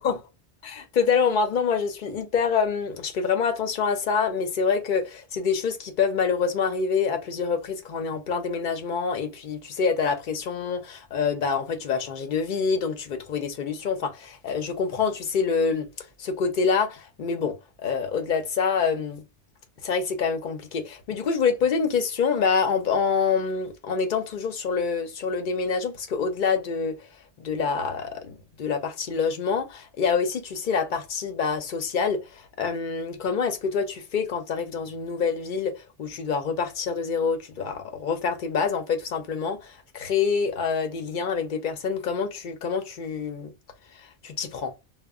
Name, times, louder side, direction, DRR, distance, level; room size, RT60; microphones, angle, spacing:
voice 1, 0.8-17.6 17.8-19.2 19.8-27.1 27.4-43.5 43.9-44.7, left 5 dB, 55° left, 0.6 m, -26 dB
2.1 x 2.1 x 3.4 m
omnidirectional pair, 1.2 m